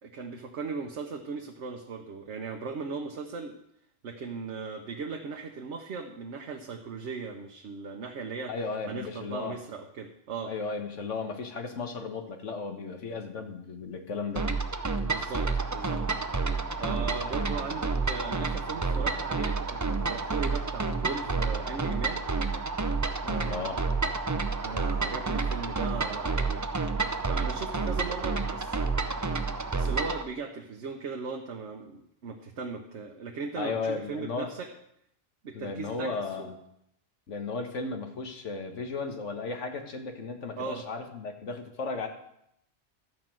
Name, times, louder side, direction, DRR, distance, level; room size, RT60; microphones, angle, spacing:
voice 1, 0.0-3.6 4.0-8.5 8.9-10.5 15.0-16.0 16.8-22.2 23.2-23.7 24.6-26.6 27.2-28.8 29.7-34.7 35.4-36.1 36.4-36.5 40.6-40.8, right 5 dB, 70° right, 2 dB, 1.1 m, -38 dB
voice 2, 8.5-9.6 10.5-14.5 23.4-23.8 33.6-34.5 35.5-36.5 37.3-42.1, left 4 dB, 85° left, 5 dB, 1.6 m, -35 dB
sound 1, 14.4-30.2, right 4 dB, 30° right, 0.3 m, -29 dB
12.5 x 5.3 x 7.5 m, 0.78 s
omnidirectional pair, 1.2 m